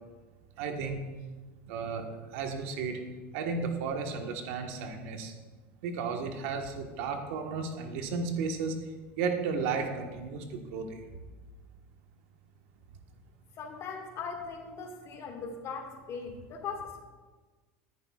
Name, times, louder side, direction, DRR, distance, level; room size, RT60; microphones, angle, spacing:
voice 1, 0.6-1.0 1.7-2.0 2.3-3.0 3.3-5.3 5.8-8.7 9.2-10.9, right 5 dB, 75° right, 4 dB, 1.4 m, -33 dB
voice 2, 13.6-17.1, left 5 dB, 45° left, 3 dB, 1.9 m, -39 dB
13.5 x 10.0 x 2.4 m, 1.3 s
supercardioid pair, 110°, 7 cm